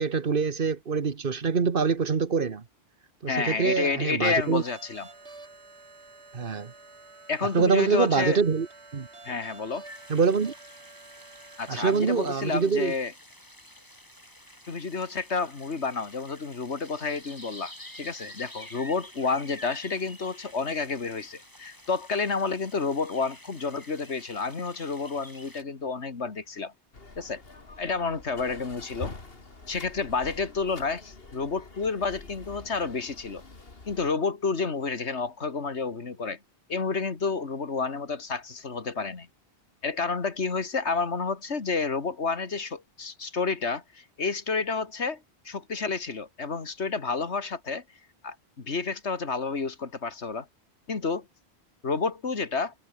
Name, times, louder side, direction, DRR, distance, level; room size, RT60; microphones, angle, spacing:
voice 1, 0.0-2.6 3.2-4.6 6.3-6.7 7.5-8.7 8.9-9.1 10.1-10.5 11.7-12.9, right 5 dB, 55° right, 1.4 m, -25 dB
voice 2, 3.3-5.1 7.3-8.4 9.2-9.8 11.6-13.1 14.7-26.7 27.2-27.4 27.8-29.1 29.7-33.4 33.9-36.4 36.7-39.3 39.8-45.2 45.5-47.8 48.2-50.5 50.9-51.3 51.8-52.7, left 4 dB, 90° left, 2.4 m, -30 dB
sound 1, 4.4-12.0, right 3 dB, 80° right, 3.4 m, -49 dB
sound 2, 9.8-25.6, equal, 20° left, 6.1 m, -49 dB
sound 3, 26.9-34.1, left 3 dB, 60° left, 2.9 m, -45 dB
omnidirectional pair, 1.1 m